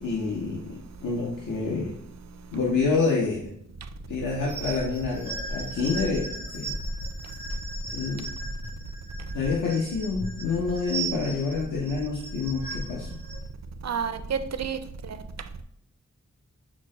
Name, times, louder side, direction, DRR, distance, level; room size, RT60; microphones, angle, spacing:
voice 1, 0.0-1.9 2.5-3.5 4.1-6.7 7.9-8.3 9.3-13.1, left 4 dB, 75° left, 0.8 m, -28 dB
sound 1, 4.5-13.4, right 2 dB, 55° left, 1.7 m, -36 dB
voice 2, 13.8-15.2, right 6 dB, 55° right, 0.4 m, -30 dB
5.9 x 2.1 x 3.7 m
cardioid pair, 45°, 32 cm